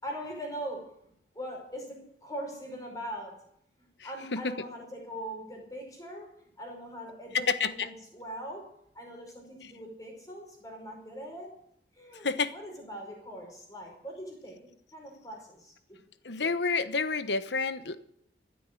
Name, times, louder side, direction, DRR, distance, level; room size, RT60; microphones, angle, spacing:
voice 1, 0.0-3.4 3.8-11.5 11.9-16.0 16.4-16.5, equal, 20° left, 1 dB, 5.1 m, -42 dB
voice 2, 7.3-7.9 12.2-12.5 16.2-18.0, left 4 dB, 75° left, 12 dB, 1.1 m, -29 dB
15.5 x 9.9 x 8.2 m, 0.71 s
head